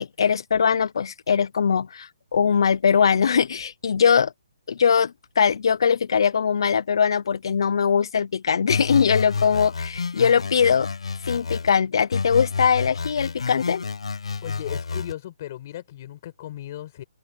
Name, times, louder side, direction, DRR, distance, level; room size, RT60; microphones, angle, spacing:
voice 1, 0.0-4.3 4.7-10.9 11.2-13.8, left 6 dB, 55° left, 0.6 m, -21 dB
sound 1, 8.7-11.7 12.1-15.1, left 5 dB, 80° left, 1.2 m, -29 dB
voice 2, 14.4-17.0, left 13 dB, 30° left, 5.8 m, -36 dB
open air
hypercardioid pair, 170°, 3 cm